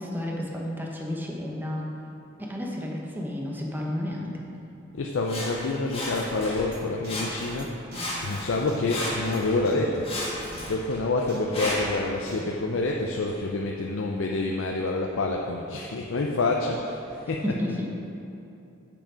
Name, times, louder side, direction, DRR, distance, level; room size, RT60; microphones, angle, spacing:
voice 1, 0.0-1.9 2.4-4.4 17.4-17.8, left 1 dB, 10° right, -2 dB, 0.9 m, -31 dB
voice 2, 4.9-7.7 8.2-10.1 10.7-17.6, left 2 dB, 65° left, 0 dB, 0.5 m, -27 dB
Sawing, 5.2-6.7 7.0-7.6 7.9-9.6 10.0-12.0 12.7-12.8, left 1 dB, 30° left, 1.6 m, -33 dB
sound 1, 6.7-6.8 7.0-7.1 7.6-7.7 7.9-8.0 8.7-8.8 9.3-9.4 9.7-9.8 10.2-10.3 10.5-10.6 11.3-11.4 12.3-12.4, right 2 dB, 55° right, 1.4 m, -43 dB
6.8 x 6.0 x 5.1 m, 2.8 s
head